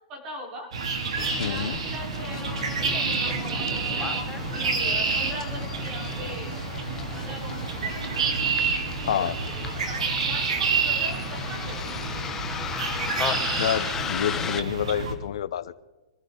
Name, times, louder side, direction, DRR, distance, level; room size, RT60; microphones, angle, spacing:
voice 1, 0.1-0.7 1.1-3.7 4.4-6.8 7.1-8.3 9.0-12.0, equal, 20° right, 0 dB, 4.1 m, -40 dB
sound 1, 0.7-15.1, right 4 dB, 75° right, 2.9 m, -29 dB
Bus, 1.2-14.6, left 7 dB, 10° left, 0.8 m, -36 dB
voice 2, 1.4-1.8 9.1-9.3 13.6-15.8, left 9 dB, 60° left, 14 dB, 0.8 m, -28 dB
25.5 x 14.0 x 3.9 m, 1.1 s
hypercardioid pair, 170°, 3 cm